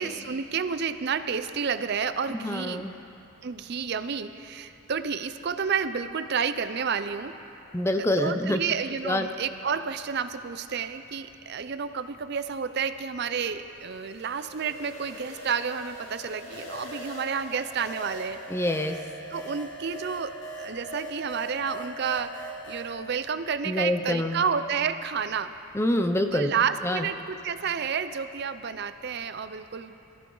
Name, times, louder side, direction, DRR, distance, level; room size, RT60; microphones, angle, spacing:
voice 1, 0.0-2.8 3.4-7.4 8.0-18.4 19.3-25.5 26.3-29.9, right 6 dB, 50° right, 11 dB, 0.5 m, -30 dB
voice 2, 2.3-2.9 7.7-8.6 9.0-9.3 18.5-19.0 23.7-24.4 25.7-26.5 26.8-27.1, left 1 dB, 10° left, 7 dB, 0.5 m, -26 dB
sound 1, 13.8-22.9, right 1 dB, 65° left, 3.0 m, -41 dB
22.0 x 14.5 x 3.9 m, 2.8 s
head